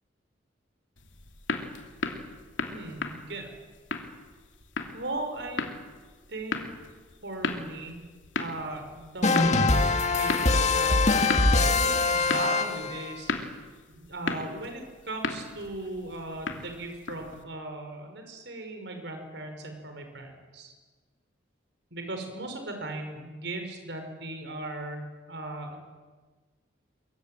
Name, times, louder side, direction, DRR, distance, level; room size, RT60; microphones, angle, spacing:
sound 1, 1.0-17.4, left 3 dB, 85° left, 2.9 m, -36 dB
voice 1, 2.7-3.5 4.9-5.6 6.3-6.7 7.2-8.0 8.4-13.3 13.9-20.7 21.9-25.8, right 2 dB, 70° right, 5 dB, 5.4 m, -38 dB
sound 2, 9.2-13.1, left 3 dB, 35° left, 1.6 m, -23 dB
24.5 x 23.0 x 9.1 m, 1.4 s
head